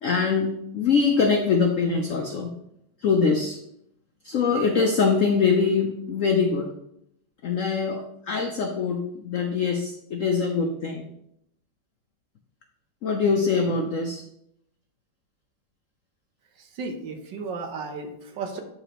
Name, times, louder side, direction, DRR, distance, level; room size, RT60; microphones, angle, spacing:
voice 1, 0.0-2.5 3.0-3.6 4.2-6.7 7.4-11.1 13.0-14.2, left 5 dB, 85° left, 4 dB, 0.7 m, -23 dB
voice 2, 16.6-18.6, right 4 dB, 65° right, 5 dB, 1.5 m, -34 dB
8.9 x 5.0 x 2.9 m, 0.77 s
omnidirectional pair, 2.1 m